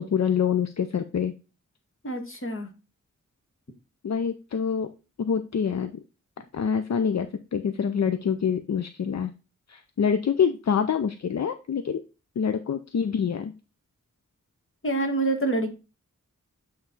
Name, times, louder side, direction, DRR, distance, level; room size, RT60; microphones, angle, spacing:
voice 1, 0.0-1.3 4.0-4.9 5.2-6.0 6.5-9.3 9.7-12.0 12.4-13.5, left 7 dB, 60° left, 10 dB, 0.5 m, -26 dB
voice 2, 2.0-2.7 14.8-15.7, right 2 dB, 40° left, 5 dB, 1.4 m, -26 dB
8.2 x 3.2 x 4.0 m, 0.31 s
wide cardioid pair, 75°, 31 cm